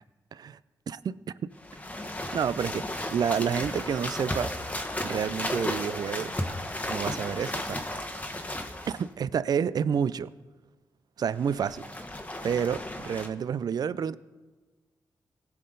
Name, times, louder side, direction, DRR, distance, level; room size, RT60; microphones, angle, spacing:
voice 1, 0.9-1.5 2.3-2.9 3.1-4.5 5.0-6.4 6.9-7.8 8.9-10.3 11.2-11.9 12.4-14.2, right 7 dB, 60° right, 17 dB, 0.4 m, -29 dB
sound 1, 1.6-9.1 11.3-13.3, left 1 dB, 20° left, 1.2 m, -34 dB
17.0 x 5.7 x 3.9 m, 1.3 s
cardioid pair, 55°, 8 cm